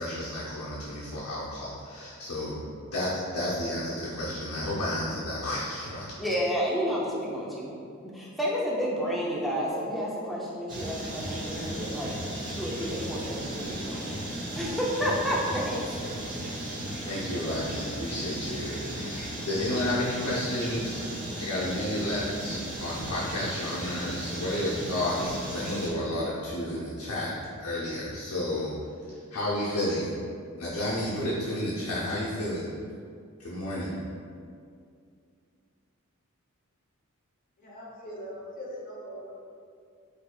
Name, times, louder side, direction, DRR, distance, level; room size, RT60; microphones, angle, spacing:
voice 1, 0.0-6.1 17.1-21.0 21.4-27.3 27.6-28.8 29.0-30.1 30.6-32.7 33.4-33.9, left 1 dB, 90° left, -8 dB, 0.6 m, -31 dB
voice 2, 6.2-7.7 8.0-12.1 12.5-14.1 14.6-15.9, equal, ahead, -6 dB, 0.5 m, -30 dB
sound 1, 10.7-25.9, right 1 dB, 40° right, 0.8 m, -36 dB
voice 3, 37.6-39.3, equal, 40° left, -4 dB, 0.7 m, -41 dB
4.4 x 2.7 x 2.2 m, 2.3 s
head